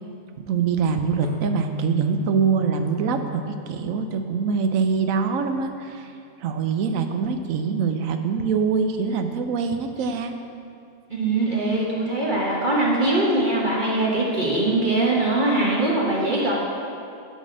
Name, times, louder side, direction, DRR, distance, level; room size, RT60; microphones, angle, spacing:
voice 1, 0.5-6.1 6.4-10.3, right 5 dB, 70° right, 7 dB, 0.9 m, -24 dB
sound 1, 1.2-4.7, left 3 dB, 85° left, 1.4 m, -34 dB
voice 2, 11.1-16.5, right 2 dB, 35° right, -4 dB, 1.1 m, -22 dB
10.0 x 4.2 x 6.2 m, 2.5 s
omnidirectional pair, 1.6 m